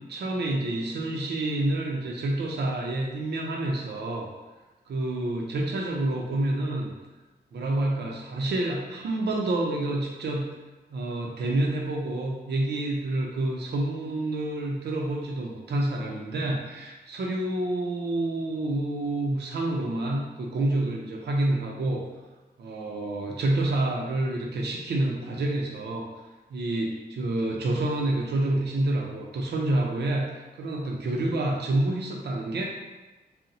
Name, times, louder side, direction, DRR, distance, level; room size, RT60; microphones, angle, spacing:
voice 1, 0.1-4.3 4.9-6.9 7.5-10.4 10.9-22.0 22.6-26.1 26.5-32.6, right 2 dB, 75° right, -1 dB, 0.5 m, -28 dB
2.7 x 2.1 x 3.8 m, 1.1 s
cardioid pair, 85°, 17 cm